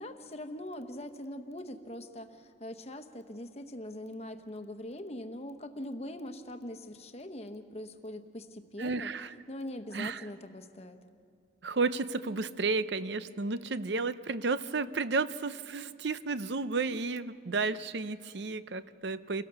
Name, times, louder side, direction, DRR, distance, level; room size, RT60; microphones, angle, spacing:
voice 1, 0.0-9.1 9.5-11.0, left 1 dB, 35° left, 7 dB, 1.0 m, -42 dB
voice 2, 8.8-9.3 9.9-10.2 11.6-19.5, right 4 dB, 65° right, 14 dB, 0.7 m, -32 dB
29.0 x 17.0 x 6.8 m, 2.3 s
head